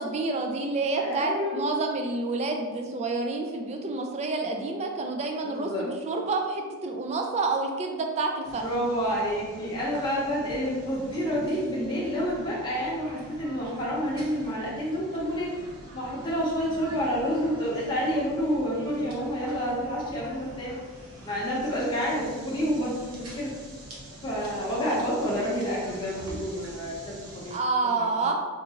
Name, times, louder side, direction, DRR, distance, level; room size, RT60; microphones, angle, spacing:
voice 1, 0.0-8.7 27.5-28.3, right 3 dB, 30° right, 3 dB, 0.3 m, -28 dB
voice 2, 1.0-1.6 5.4-5.9 8.5-15.5 15.9-20.8 21.2-23.5 24.2-27.6 27.9-28.1, equal, 20° left, -7 dB, 0.7 m, -29 dB
sound 1, 8.4-27.6, right 1 dB, 65° right, 0.8 m, -45 dB
3.6 x 2.5 x 2.8 m, 1.5 s
head